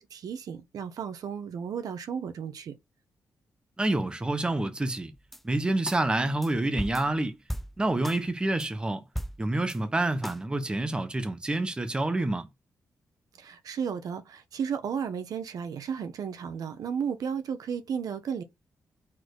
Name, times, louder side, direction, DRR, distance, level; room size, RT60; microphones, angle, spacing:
voice 1, 0.0-2.7 13.4-18.4, right 7 dB, 75° right, 1.2 m, -34 dB
voice 2, 3.8-5.1 5.4-7.4 7.8-9.0 9.4-12.5, right 2 dB, 15° right, 1.0 m, -28 dB
sound 1, 5.2-5.4 5.9-6.0 6.4-6.5 6.8-8.2 8.6-8.7 9.1-9.8 10.2-10.4, equal, 5° left, 0.5 m, -37 dB
4.5 x 4.3 x 4.8 m
cardioid pair, 125°, 6 cm